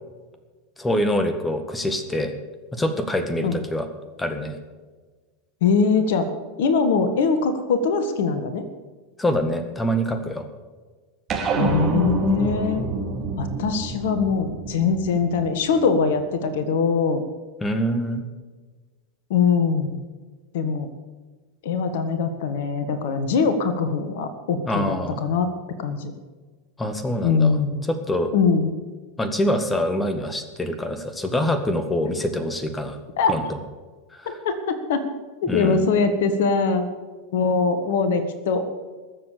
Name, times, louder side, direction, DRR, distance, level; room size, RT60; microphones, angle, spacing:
voice 1, 0.8-2.3 2.7-3.9 4.2-4.6 9.2-10.5 17.6-18.2 24.7-25.2 26.8-27.6 27.9-28.3 29.2-33.0 33.3-33.6 34.2-34.4 35.5-35.8, equal, 10° left, 8 dB, 1.8 m, -25 dB
voice 2, 5.6-6.3 6.6-8.7 11.6-12.8 13.4-17.2 19.3-20.0 20.5-20.9 21.6-25.5 25.8-26.1 27.2-27.8 28.3-28.7 33.2-33.3 34.2-35.1 35.4-36.9 37.3-38.7, left 5 dB, 60° left, 10 dB, 1.6 m, -22 dB
sound 1, 11.3-16.0, right 3 dB, 30° right, 3.4 m, -27 dB
21.0 x 7.7 x 6.9 m, 1.4 s
figure-of-eight pair, 85°, 0 cm